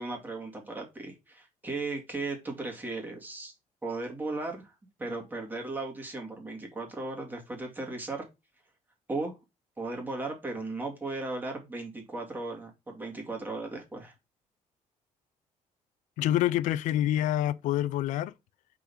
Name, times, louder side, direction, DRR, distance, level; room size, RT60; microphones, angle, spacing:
voice 1, 0.0-3.5 3.8-4.7 5.0-8.3 9.1-9.4 9.8-14.1, right 2 dB, 15° right, 2.2 m, -36 dB
voice 2, 16.2-18.3, left 13 dB, 90° left, 0.4 m, -27 dB
5.5 x 3.9 x 5.5 m
cardioid pair, 130°, 13 cm